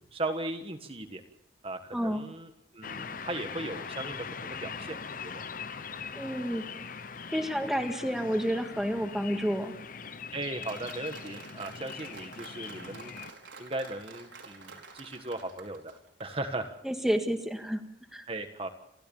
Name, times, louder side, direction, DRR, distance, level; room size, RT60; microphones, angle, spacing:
voice 1, 0.1-1.2 1.6-5.0 5.2-5.3 10.3-13.1 13.6-15.9 16.2-16.7 18.3-18.7, right 2 dB, 30° right, 6 dB, 1.5 m, -37 dB
voice 2, 1.9-2.2 6.2-6.6 7.3-9.7 16.8-17.8 18.1-18.3, equal, ahead, 5 dB, 1.8 m, -30 dB
sound 1, 2.8-13.3, left 5 dB, 45° left, 0.9 m, -41 dB
Applause, 10.6-16.5, right 4 dB, 85° right, 4.9 m, -49 dB
29.0 x 13.5 x 7.2 m, 0.77 s
head